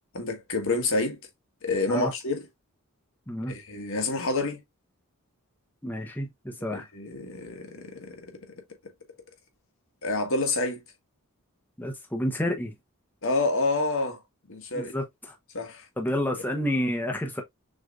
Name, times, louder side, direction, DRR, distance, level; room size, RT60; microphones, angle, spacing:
voice 1, 0.1-1.2 1.6-2.4 3.5-4.6 6.7-8.3 10.0-10.8 13.2-14.2 14.5-14.9 15.5-15.8, left 3 dB, 65° left, 1.5 m, -28 dB
voice 2, 5.8-6.8 11.8-12.7 14.7-15.3 16.0-17.4, equal, 10° left, 0.9 m, -29 dB
6.4 x 3.4 x 2.5 m
head